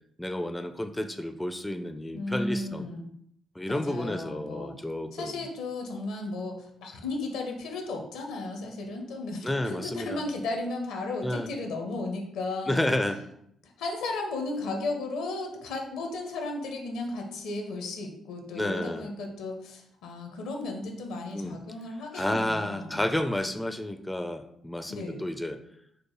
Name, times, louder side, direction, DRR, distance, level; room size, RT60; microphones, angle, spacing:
voice 1, 0.2-2.9 3.6-5.5 9.4-10.2 11.2-11.5 12.7-13.2 18.5-19.1 21.3-21.6 22.1-25.6, left 1 dB, 10° left, 8 dB, 0.4 m, -31 dB
voice 2, 2.1-3.1 3.7-4.7 5.1-12.8 13.6-23.0 24.9-25.2, left 2 dB, 70° left, 3 dB, 0.6 m, -34 dB
4.7 x 2.1 x 2.9 m, 0.73 s
hypercardioid pair, 40°, 0 cm